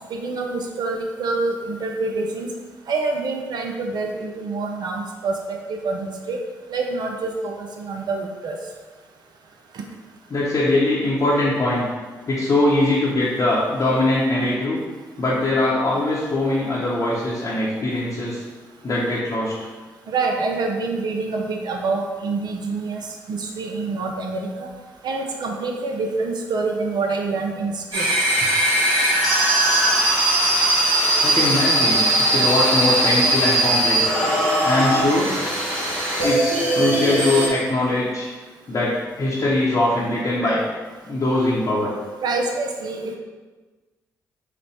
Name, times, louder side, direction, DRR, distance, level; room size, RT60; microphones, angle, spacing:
voice 1, 0.1-2.5 2.9-6.4 6.7-8.6 9.7-9.8 20.1-24.7 25.0-28.0 42.2-43.2, right 3 dB, 50° right, 2 dB, 0.5 m, -26 dB
voice 2, 10.3-11.9 12.3-14.8 15.2-18.4 18.8-19.5 31.2-34.1 34.6-35.3 36.2-38.3 38.7-40.6 41.0-41.9, left 2 dB, 40° left, -6 dB, 0.8 m, -21 dB
sound 1, 27.9-37.5, right 1 dB, 70° right, 1.1 m, -19 dB
4.8 x 2.2 x 3.2 m, 1.3 s
figure-of-eight pair, 40°, 9 cm